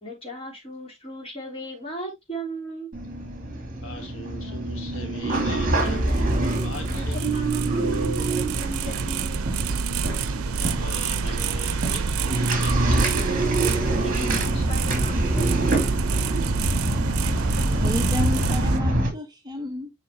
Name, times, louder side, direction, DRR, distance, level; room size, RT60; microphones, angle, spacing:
voice 1, 0.0-2.9 6.9-9.5 14.0-16.2, right 1 dB, 25° left, 3.4 m, -37 dB
sound 1, 2.9-19.1, right 1 dB, 40° right, 2.4 m, -26 dB
voice 2, 3.8-6.3 6.6-7.4 10.4-13.3 14.1-14.6, left 1 dB, 65° left, 1.4 m, -40 dB
sound 2, 5.3-18.8, right 5 dB, 80° right, 0.5 m, -28 dB
voice 3, 17.8-19.9, left 2 dB, 20° right, 1.1 m, -31 dB
7.0 x 5.6 x 2.8 m
head